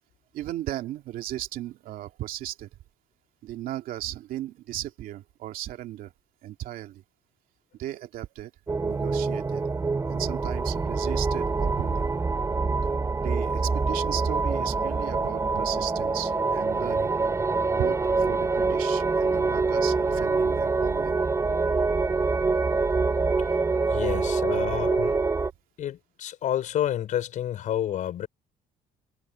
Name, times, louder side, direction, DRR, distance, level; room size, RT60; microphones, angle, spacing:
voice 1, 0.3-2.7 3.4-6.1 6.4-7.0 7.8-8.5 8.8-9.6 10.1-12.0 13.2-17.2 17.8-21.1 24.1-24.2 24.6-24.7, right 13 dB, 70° right, 2.5 m, -36 dB
sound 1, 8.7-25.5, right 4 dB, 20° right, 3.8 m, -25 dB
voice 2, 23.9-25.2 25.8-28.3, left 11 dB, 55° left, 5.8 m, -29 dB
cardioid pair, 135°, 15 cm